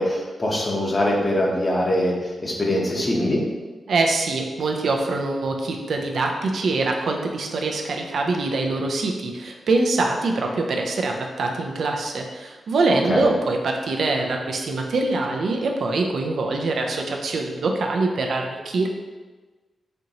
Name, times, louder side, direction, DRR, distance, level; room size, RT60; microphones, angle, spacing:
voice 1, 0.0-3.4 13.0-13.3, left 1 dB, 40° left, -2 dB, 0.9 m, -23 dB
voice 2, 3.9-18.9, right 3 dB, 75° right, 2 dB, 0.4 m, -24 dB
4.3 x 2.6 x 2.8 m, 1.3 s
supercardioid pair, 45°, 0 cm